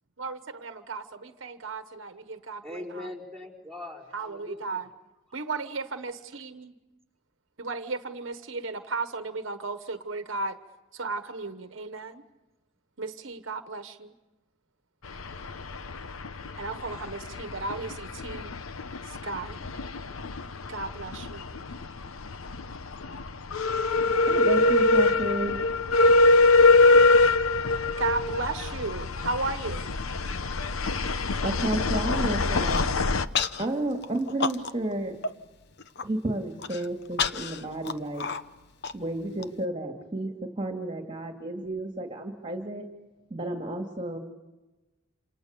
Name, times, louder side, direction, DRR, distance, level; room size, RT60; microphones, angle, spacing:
voice 1, 0.2-3.1 4.1-4.9 5.3-6.7 7.6-10.6 10.9-12.2 13.0-14.1 16.6-18.5 19.0-19.7 20.7-21.4 28.0-29.8, right 3 dB, 65° right, 8 dB, 1.2 m, -35 dB
voice 2, 2.6-4.8, left 1 dB, 5° left, 0 dB, 5.1 m, -41 dB
sound 1, 15.0-33.3, left 3 dB, 85° left, 0.9 m, -24 dB
voice 3, 24.2-25.6 31.4-32.9 33.6-35.2 36.0-38.3 38.9-42.8 43.3-44.2, right 1 dB, 25° right, 3 dB, 2.4 m, -31 dB
Human voice, 32.5-32.9 33.3-33.7 34.0-34.9 35.2-35.3 35.7-36.1 36.6-39.5, left 5 dB, 55° left, 0.9 m, -31 dB
28.0 x 28.0 x 6.8 m, 1.1 s
head